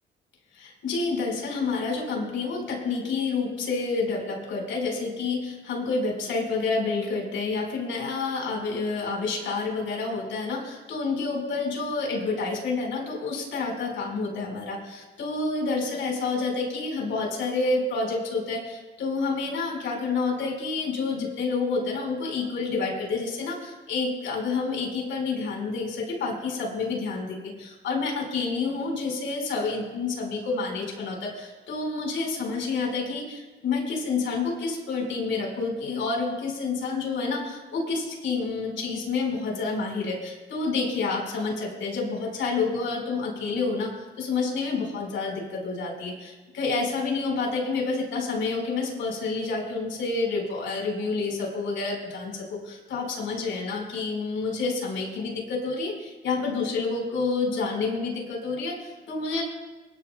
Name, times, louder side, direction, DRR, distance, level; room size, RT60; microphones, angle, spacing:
voice 1, 0.5-59.4, left 4 dB, 75° left, 0 dB, 4.8 m, -29 dB
24.0 x 13.0 x 2.3 m, 1.2 s
cardioid pair, 90°, 20 cm